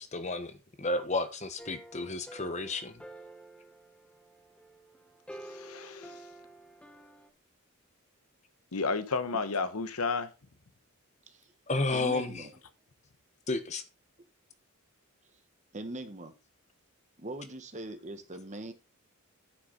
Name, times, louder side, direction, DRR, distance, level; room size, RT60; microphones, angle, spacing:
voice 1, 0.0-3.0 11.7-12.4 13.5-13.8, left 2 dB, 30° left, 1.0 m, -32 dB
sound 1, 1.6-7.3, right 1 dB, 5° left, 0.8 m, -50 dB
voice 2, 5.4-6.2 8.7-10.3, left 4 dB, 80° left, 1.0 m, -32 dB
voice 3, 11.9-12.5 15.7-16.3 17.2-18.7, right 1 dB, 30° right, 1.1 m, -41 dB
10.0 x 5.8 x 3.9 m
head